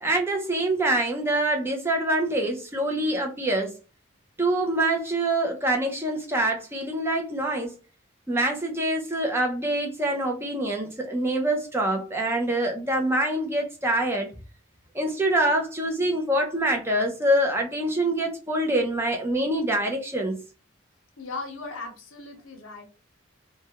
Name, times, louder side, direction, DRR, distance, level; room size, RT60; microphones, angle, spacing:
voice 1, 0.0-3.7 4.4-7.7 8.3-14.3 14.9-20.4, right 1 dB, 10° right, 0.4 m, -25 dB
voice 2, 21.2-22.8, left 3 dB, 80° left, 0.7 m, -37 dB
2.3 x 2.1 x 2.8 m
head